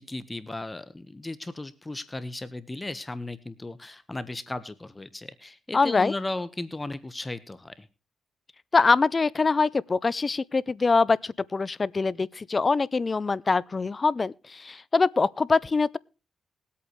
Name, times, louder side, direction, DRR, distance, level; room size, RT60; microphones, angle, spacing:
voice 1, 0.0-7.9, left 2 dB, 25° left, 1.3 m, -36 dB
voice 2, 5.7-6.1 8.7-16.0, left 4 dB, 40° left, 0.6 m, -24 dB
21.5 x 8.5 x 3.2 m
supercardioid pair, 55°, 0 cm